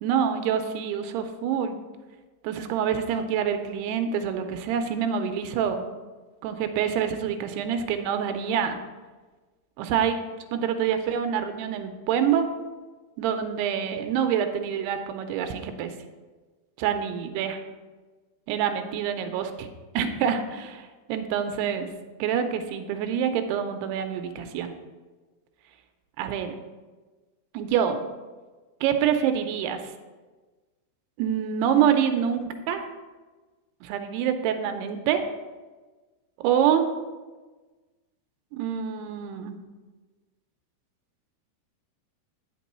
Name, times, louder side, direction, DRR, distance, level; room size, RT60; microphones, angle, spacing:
voice 1, 0.0-1.8 2.4-5.8 6.4-8.8 9.8-10.2 10.5-12.5 13.2-15.9 16.8-17.6 18.5-19.7 19.9-21.9 22.2-24.8 26.2-26.6 27.5-28.1 28.8-29.9 31.2-32.9 33.8-35.2 36.4-36.9 38.5-39.6, right 8 dB, 85° right, 7 dB, 2.6 m, -26 dB
9.2 x 6.0 x 4.2 m, 1.3 s
omnidirectional pair, 4.8 m